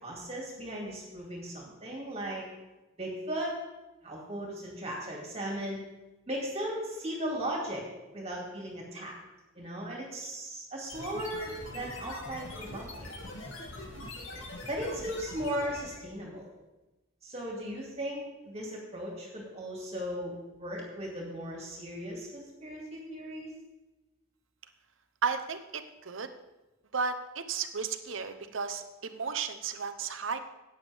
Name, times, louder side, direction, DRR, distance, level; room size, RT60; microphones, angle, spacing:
voice 1, 0.0-2.4 3.0-3.6 4.0-5.8 6.3-7.8 8.1-9.1 9.5-13.1 14.3-16.5 17.2-23.5, equal, 30° right, -2 dB, 2.6 m, -37 dB
sound 1, 10.9-16.1, left 2 dB, 85° left, 2.4 m, -43 dB
voice 2, 25.2-26.3 26.9-30.4, right 5 dB, 75° right, 8 dB, 0.9 m, -34 dB
15.5 x 9.3 x 3.5 m, 1.1 s
head